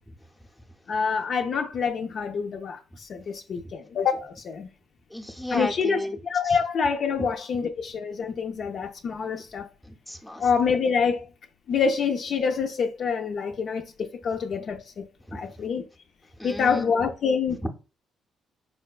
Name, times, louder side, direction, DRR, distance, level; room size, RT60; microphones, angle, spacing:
voice 1, 0.9-4.7 5.5-6.0 6.2-9.7 10.4-11.2 11.7-15.0 15.3-15.8 16.4-17.6, left 6 dB, 55° left, 0.4 m, -26 dB
voice 2, 5.1-6.2 6.4-6.6 7.2-7.3 9.8-10.5 15.3-15.7 16.4-16.9 17.6-17.7, left 1 dB, ahead, 0.6 m, -33 dB
4.2 x 2.2 x 2.3 m
cardioid pair, 90°, 0 cm